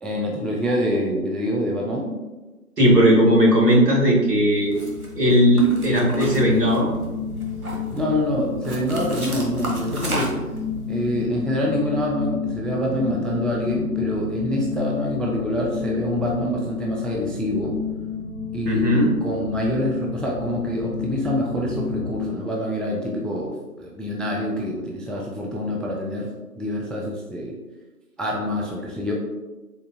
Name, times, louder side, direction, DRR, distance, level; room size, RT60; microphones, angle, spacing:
voice 1, 0.0-2.1 7.9-10.3 10.9-17.8 18.5-26.3 26.6-27.6 28.2-29.1, equal, ahead, -2 dB, 0.3 m, -26 dB
voice 2, 2.8-4.8 5.2-6.9 18.7-19.1, equal, 80° right, -3 dB, 1.1 m, -17 dB
sound 1, 4.2-22.3, left 6 dB, 75° left, 0.6 m, -31 dB
sound 2, 4.7-5.1 5.6-7.0 7.4-8.0 8.6-10.6, right 1 dB, 65° right, 0.7 m, -32 dB
3.7 x 2.1 x 2.3 m, 1.1 s
figure-of-eight pair, 175°, 47 cm